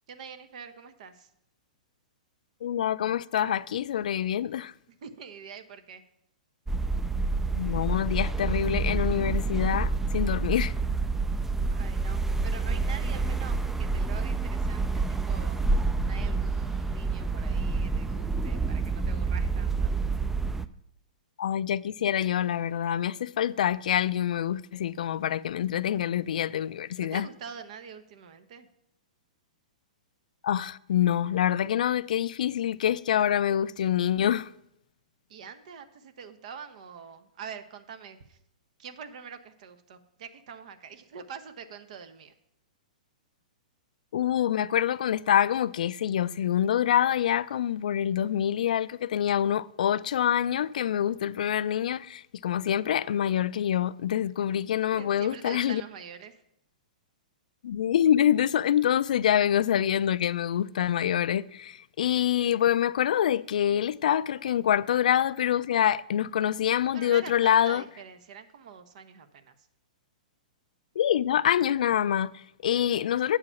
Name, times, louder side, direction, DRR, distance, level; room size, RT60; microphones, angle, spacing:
voice 1, 0.1-1.3 5.0-6.0 11.7-15.6 16.0-20.0 26.9-28.7 35.3-38.4 38.8-42.3 54.9-56.4 66.9-69.7, right 7 dB, 60° right, 1.0 m, -45 dB
voice 2, 2.6-4.7 7.5-10.7 21.4-27.3 30.4-34.5 44.1-55.8 57.6-67.8 71.0-73.4, left 10 dB, 70° left, 0.3 m, -26 dB
sound 1, 6.7-20.7, right 3 dB, 5° right, 0.3 m, -28 dB
8.5 x 4.8 x 7.0 m
hypercardioid pair, 135°, 4 cm